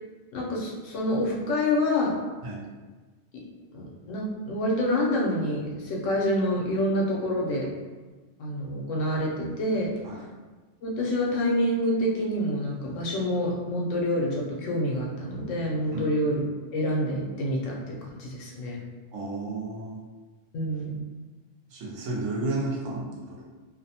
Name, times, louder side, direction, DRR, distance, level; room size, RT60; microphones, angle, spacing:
voice 1, 0.3-2.2 3.7-7.7 8.4-9.9 10.8-16.4 16.7-18.8 20.5-20.9, left 1 dB, 80° left, -3 dB, 1.0 m, -27 dB
voice 2, 19.1-20.0 21.7-23.4, right 2 dB, 80° right, -2 dB, 1.0 m, -32 dB
2.6 x 2.1 x 2.7 m, 1.3 s
omnidirectional pair, 1.3 m